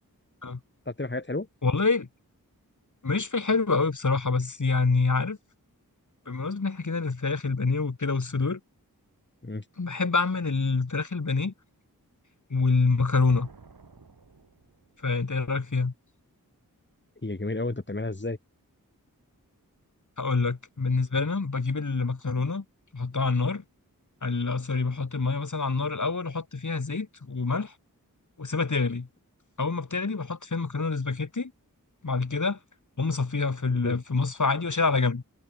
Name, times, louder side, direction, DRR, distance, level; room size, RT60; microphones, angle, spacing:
voice 1, 0.9-1.5 9.4-9.6 17.2-18.4 33.8-34.0, left 2 dB, 30° left, 2.9 m, -31 dB
voice 2, 1.6-2.1 3.0-5.4 6.3-8.6 9.8-11.5 12.5-13.5 15.0-15.9 20.2-22.6 22.9-23.6 24.2-27.7 28.4-29.1 29.6-31.5 32.0-32.6 33.0-35.2, left 4 dB, 55° left, 2.6 m, -26 dB
sound 1, 13.2-15.1, right 4 dB, 80° right, 6.6 m, -51 dB
cardioid pair, 45°, 35 cm